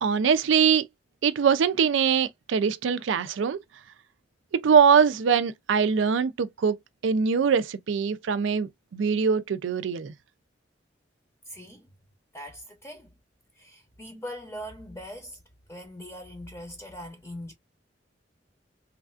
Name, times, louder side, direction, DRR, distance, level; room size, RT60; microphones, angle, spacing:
voice 1, 0.0-0.8 1.2-3.6 4.5-10.1, right 6 dB, 90° right, 0.4 m, -23 dB
voice 2, 11.5-11.9 12.3-13.1 13.5-15.4 15.7-17.5, equal, 15° left, 0.6 m, -41 dB
3.2 x 2.4 x 2.3 m
head